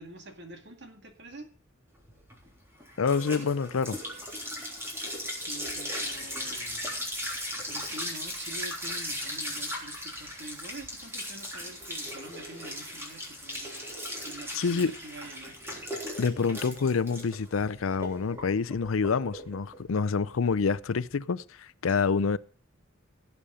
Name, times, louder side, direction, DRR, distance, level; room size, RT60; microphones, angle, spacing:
voice 1, 0.0-1.5 5.4-6.8 7.7-15.6 21.9-22.0, right 1 dB, 60° right, 2.1 m, -46 dB
sound 1, 2.0-21.1, equal, 10° right, 3.4 m, -37 dB
voice 2, 3.0-4.0 14.5-14.9 16.2-22.4, left 5 dB, 85° left, 0.5 m, -27 dB
17.0 x 7.1 x 5.0 m
head